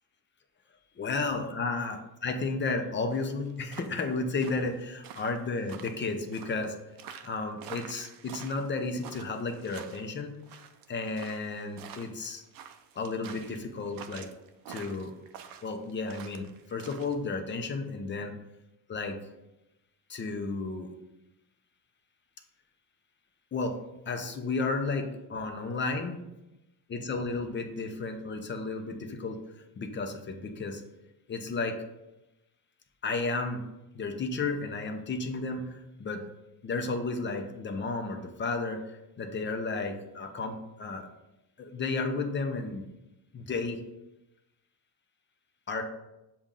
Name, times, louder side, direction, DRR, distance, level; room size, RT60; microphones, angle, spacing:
voice 1, 1.0-6.7 7.2-10.3 10.9-12.4 13.0-14.3 14.7-15.1 15.6-18.3 18.9-19.2 20.1-20.9 23.5-23.8 24.1-26.2 26.9-29.4 29.8-30.8 31.3-31.8 33.0-33.6 33.9-36.2 36.6-41.1 41.6-42.8 43.3-43.8 45.7-45.8, left 3 dB, 30° left, 5 dB, 0.7 m, -33 dB
sound 1, 3.1-17.1, right 8 dB, 65° right, 0.6 m, -48 dB
7.1 x 2.5 x 5.4 m, 0.94 s
cardioid pair, 135°, 37 cm